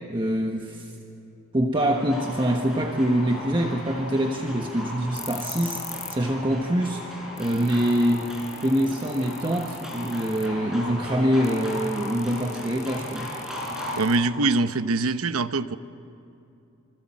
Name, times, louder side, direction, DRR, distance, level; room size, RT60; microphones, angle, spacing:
voice 1, 0.1-0.9 1.5-5.8 6.1-7.0 7.4-8.3 8.6-13.3, equal, 25° right, 2 dB, 1.3 m, -24 dB
sound 1, 1.7-14.0, left 1 dB, 5° right, 7.1 m, -37 dB
sound 2, 5.1-6.3 6.6-6.7 7.1-7.2 7.4-10.6 11.4-14.6, left 5 dB, 15° left, 1.1 m, -42 dB
voice 2, 14.0-15.8, right 3 dB, 85° right, 11 dB, 1.0 m, -23 dB
28.0 x 26.0 x 7.5 m, 2.8 s
head